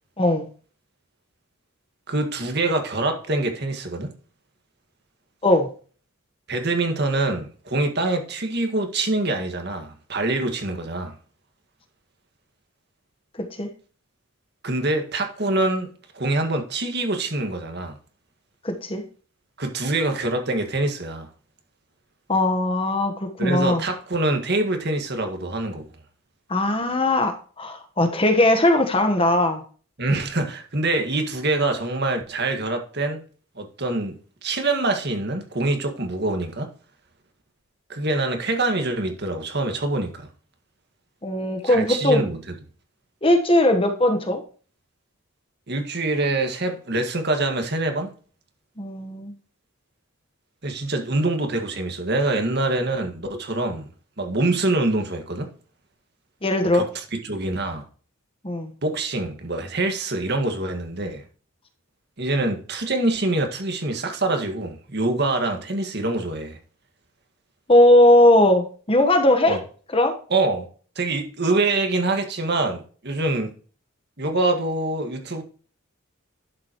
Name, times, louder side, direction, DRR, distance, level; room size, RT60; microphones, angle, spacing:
voice 1, 0.2-0.5 5.4-5.7 13.4-13.7 18.6-19.0 22.3-23.8 26.5-29.6 41.2-42.3 43.2-44.4 48.8-49.3 56.4-56.9 58.4-58.7 67.7-69.6 69.9-70.1, left 1 dB, 25° left, 1.1 m, -19 dB
voice 2, 2.1-4.1 6.5-11.2 14.6-18.0 19.6-21.3 23.4-25.8 30.0-33.2 33.6-34.1 34.4-36.7 37.9-40.3 41.6-42.4 45.7-48.1 50.6-53.9 54.2-55.5 56.7-57.9 58.8-61.2 62.2-66.6 69.4-69.6 70.3-70.7 71.0-73.5 74.2-75.4, right 2 dB, 50° right, 1.8 m, -25 dB
11.5 x 7.6 x 3.0 m
head